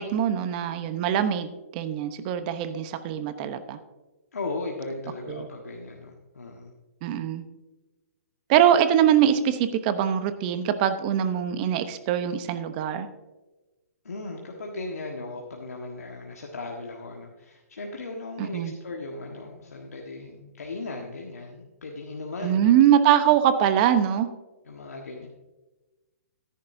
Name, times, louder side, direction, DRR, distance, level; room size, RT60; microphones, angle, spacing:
voice 1, 0.0-3.8 5.3-5.5 7.0-7.4 8.5-13.1 18.4-18.7 22.4-24.3, right 10 dB, 35° right, 10 dB, 0.9 m, -23 dB
voice 2, 4.3-6.7 14.0-22.7 24.6-25.3, left 2 dB, 85° left, 0 dB, 1.5 m, -37 dB
14.0 x 10.0 x 2.7 m, 1.1 s
hypercardioid pair, 140°, 8 cm